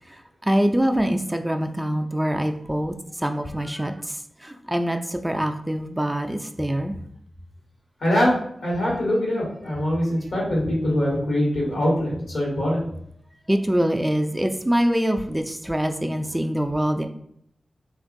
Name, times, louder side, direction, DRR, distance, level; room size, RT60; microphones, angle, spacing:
voice 1, 0.1-7.0 13.5-17.1, equal, 10° right, 5 dB, 0.3 m, -24 dB
voice 2, 8.0-12.8, left 1 dB, 80° left, -4 dB, 1.4 m, -23 dB
2.9 x 2.5 x 2.5 m, 0.68 s
cardioid pair, 45°, 0 cm